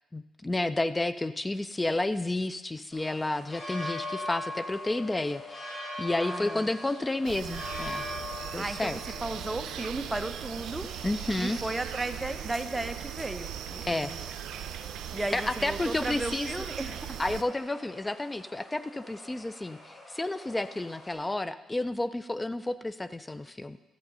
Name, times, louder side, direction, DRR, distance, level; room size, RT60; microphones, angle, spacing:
voice 1, 0.1-8.0 8.5-9.0 11.0-11.6 13.8-14.3 15.3-16.5 17.2-23.8, left 2 dB, 15° left, 13 dB, 0.3 m, -31 dB
sound 1, 2.9-21.1, left 1 dB, 40° left, 4.1 m, -43 dB
voice 2, 6.2-6.7 8.5-10.9 11.4-14.2 15.1-17.2, right 2 dB, 15° right, 8 dB, 0.8 m, -35 dB
sound 2, 7.2-17.4, right 10 dB, 85° right, 0.6 m, -39 dB
12.5 x 7.6 x 5.5 m, 1.2 s
cardioid pair, 90°, 0 cm